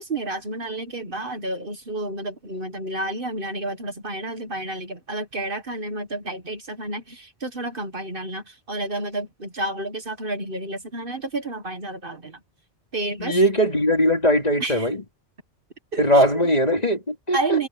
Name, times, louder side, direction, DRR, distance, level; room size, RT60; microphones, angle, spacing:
voice 1, 0.0-12.4 12.9-13.3 14.6-14.9 15.9-16.5 17.3-17.7, right 2 dB, 50° right, 1.8 m, -30 dB
voice 2, 13.2-15.0 16.0-17.6, equal, 35° left, 3.2 m, -20 dB
omnidirectional pair, 1.2 m